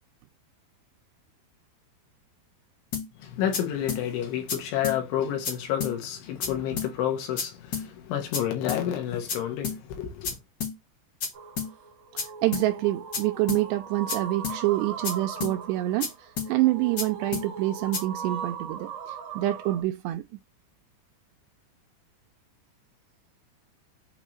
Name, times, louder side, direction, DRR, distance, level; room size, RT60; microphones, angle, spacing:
sound 1, 2.9-3.1 3.5-3.6 3.9-4.0 4.5-4.6 4.8-5.0 5.4-5.5 5.8-5.9 6.4-6.5 6.8-6.9 7.4-7.5 7.7-7.9 8.3-8.4 8.7-8.8 9.3-9.4 9.6-9.8 10.2-10.3 10.6-10.7 11.2-11.3 11.6-11.7 12.2-12.3 12.5-12.7 13.1-13.2 13.5-13.6 14.1-14.2 14.4-14.6 15.0-15.1 15.4-15.5 16.0-16.1 16.4-16.5 17.0-17.1 17.3-17.5 17.9-18.0, left 6 dB, 50° left, 1.9 m, -30 dB
voice 1, 3.2-10.4, left 10 dB, 80° left, 4.0 m, -30 dB
sound 2, 11.3-19.8, right 6 dB, 55° right, 3.3 m, -39 dB
voice 2, 12.4-18.9 19.4-20.2, right 16 dB, 85° right, 2.5 m, -26 dB
8.3 x 3.4 x 4.4 m
omnidirectional pair, 5.4 m